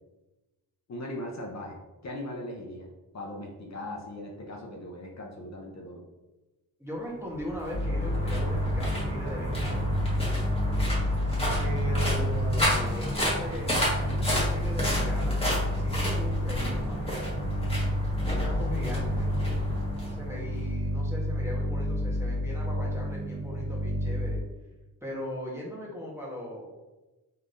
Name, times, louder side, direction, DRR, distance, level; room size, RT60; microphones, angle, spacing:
voice 1, 0.9-2.9 3.1-6.0, left 1 dB, 50° left, 0 dB, 0.7 m, -39 dB
voice 2, 6.8-10.2 11.6-17.3 18.3-19.3 20.1-24.4 25.0-26.7, equal, 5° right, -4 dB, 1.1 m, -39 dB
sound 1, 7.3-20.7, equal, 15° left, 1.4 m, -31 dB
sound 2, 7.7-24.4, left 1 dB, 80° right, 0.9 m, -30 dB
3.6 x 3.2 x 2.6 m, 1.1 s
cardioid pair, 75°, 36 cm